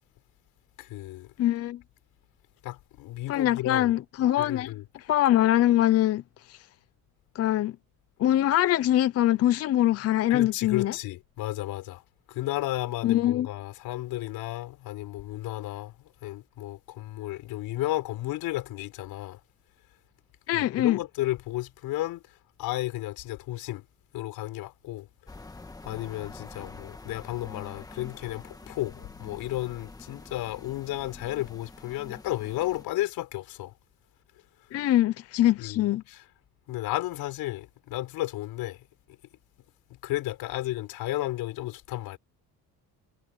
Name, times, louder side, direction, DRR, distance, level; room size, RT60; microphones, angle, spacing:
voice 1, 0.8-1.3 2.6-3.9 4.4-4.8 10.3-12.0 12.3-15.9 16.2-19.4 20.5-22.2 22.6-23.8 24.1-25.1 25.8-33.7 35.6-36.2 36.7-38.8 40.0-42.2, left 16 dB, 80° left, 4.3 m, -33 dB
voice 2, 1.4-1.8 3.3-4.7 5.0-6.2 6.5-6.6 7.3-7.7 8.2-10.9 13.0-13.5 20.5-21.0 34.7-36.0, left 13 dB, 45° left, 0.6 m, -23 dB
sound 1, 25.3-32.9, left 2 dB, 10° left, 1.5 m, -46 dB
cardioid pair, 165°, 35 cm